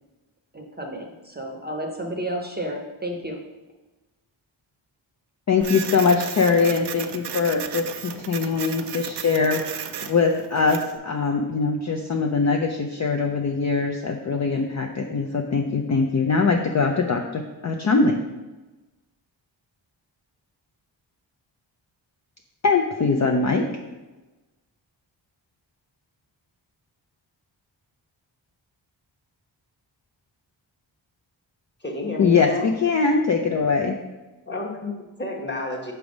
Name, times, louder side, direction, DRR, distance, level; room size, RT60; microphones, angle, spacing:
voice 1, 0.5-3.4, right 1 dB, 20° right, 2 dB, 0.7 m, -32 dB
voice 2, 5.5-18.2 22.6-23.8 32.2-34.0, left 4 dB, 40° left, 3 dB, 0.5 m, -22 dB
Printer, 5.6-11.0, right 9 dB, 60° right, 0.5 m, -35 dB
voice 3, 31.8-32.7 34.5-35.9, left 2 dB, 25° left, -1 dB, 1.3 m, -30 dB
5.9 x 3.4 x 5.2 m, 1.1 s
wide cardioid pair, 85°, 47 cm